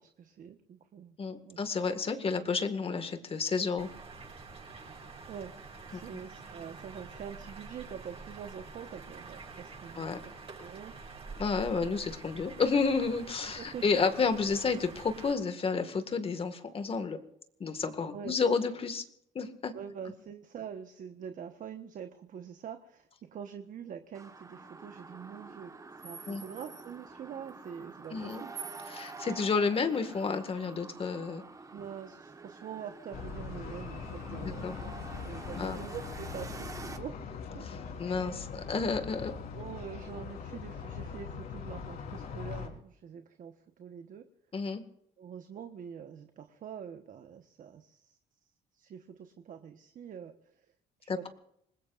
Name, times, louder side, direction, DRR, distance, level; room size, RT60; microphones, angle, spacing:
voice 1, 0.0-1.2 1.4-1.6 5.3-5.5 5.9-10.1 10.6-11.0 13.4-13.8 18.1-18.3 19.7-28.5 31.7-34.9 35.3-37.7 39.5-44.3 45.2-48.2 48.7-50.7 51.0-51.3, right 8 dB, 50° right, 7 dB, 1.3 m, -45 dB
voice 2, 1.2-3.9 5.9-6.0 10.0-10.2 11.4-17.2 17.6-19.0 19.4-19.7 26.3-26.4 28.1-28.4 28.9-31.4 34.4-34.8 35.5-35.8 37.6-39.3 44.5-44.8 51.1-51.3, left 4 dB, 35° left, 8 dB, 2.0 m, -31 dB
sound 1, 3.8-15.3, right 4 dB, 35° right, 7.4 m, -47 dB
sound 2, 24.1-37.0, right 4 dB, 20° right, 1.4 m, -47 dB
sound 3, 33.1-42.7, left 6 dB, 65° left, 4.3 m, -41 dB
27.0 x 20.0 x 2.6 m, 0.72 s
cardioid pair, 110°, 17 cm